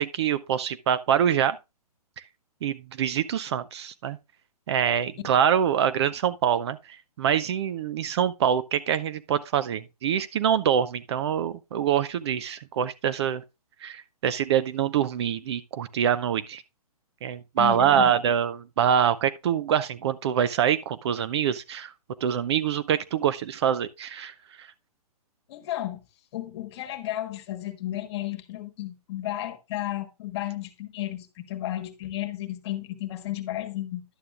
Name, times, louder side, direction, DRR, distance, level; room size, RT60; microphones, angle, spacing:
voice 1, 0.0-1.6 2.6-4.2 4.7-6.8 7.2-13.4 13.8-16.6 17.2-21.9 22.2-24.3 24.6-24.7, right 9 dB, 45° right, 0.5 m, -25 dB
voice 2, 17.6-18.1 25.5-26.0 26.3-34.0, left 14 dB, 40° left, 1.3 m, -33 dB
11.0 x 8.5 x 2.4 m
hypercardioid pair, 140°, 20 cm